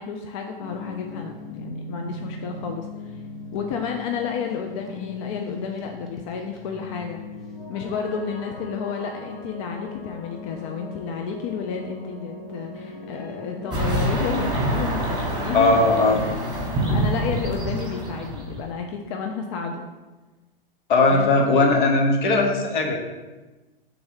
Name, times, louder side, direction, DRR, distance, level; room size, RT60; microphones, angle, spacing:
voice 1, 0.0-3.2 3.5-7.2 7.7-15.8 16.1-16.3 16.8-19.9 21.1-21.3, left 6 dB, 35° left, 3 dB, 0.4 m, -31 dB
sound 1, 0.6-16.9, left 3 dB, ahead, 0.7 m, -39 dB
sound 2, 13.7-18.8, right 1 dB, 15° right, 1.2 m, -26 dB
voice 2, 15.5-16.2 20.9-23.0, left 2 dB, 55° left, 2 dB, 0.9 m, -18 dB
3.6 x 2.9 x 4.9 m, 1.2 s
hypercardioid pair, 110°, 29 cm